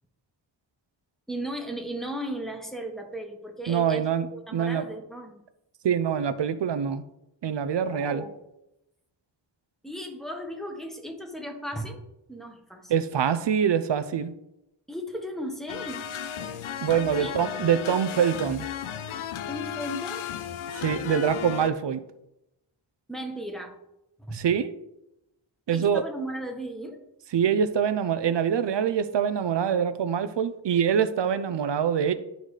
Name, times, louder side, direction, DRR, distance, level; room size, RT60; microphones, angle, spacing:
voice 1, 1.3-5.4 7.9-8.4 9.8-12.0 12.3-12.9 14.9-16.0 17.2-17.3 19.5-20.3 20.7-20.8 23.1-23.8 24.2-24.4 25.7-27.0, right 1 dB, ahead, 2 dB, 1.2 m, -36 dB
voice 2, 3.7-4.3 4.5-4.8 5.8-7.0 7.4-8.2 12.9-14.3 16.8-18.7 20.7-22.0 24.3-24.7 25.7-26.0 27.3-32.1, right 8 dB, 65° right, 12 dB, 0.6 m, -25 dB
sound 1, 15.7-21.7, left 9 dB, 85° left, 0.6 m, -34 dB
11.5 x 3.9 x 3.2 m, 0.87 s
wide cardioid pair, 80°, 47 cm